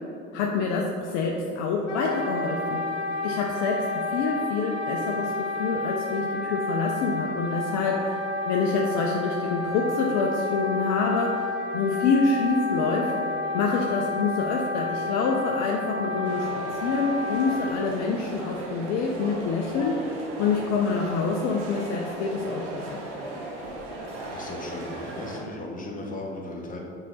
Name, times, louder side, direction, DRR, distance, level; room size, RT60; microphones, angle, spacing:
voice 1, 0.3-2.9 3.2-20.1 20.4-23.0, left 4 dB, 50° left, 0 dB, 0.7 m, -27 dB
Wind instrument woodwind instrument, 1.9-17.7, left 2 dB, 85° left, 1.1 m, -31 dB
sound 1, 16.2-25.4, right 1 dB, 60° right, 1.5 m, -37 dB
voice 2, 24.2-26.8, left 2 dB, 25° left, -1 dB, 1.3 m, -36 dB
6.2 x 4.9 x 4.1 m, 2.7 s
figure-of-eight pair, 70°, 35 cm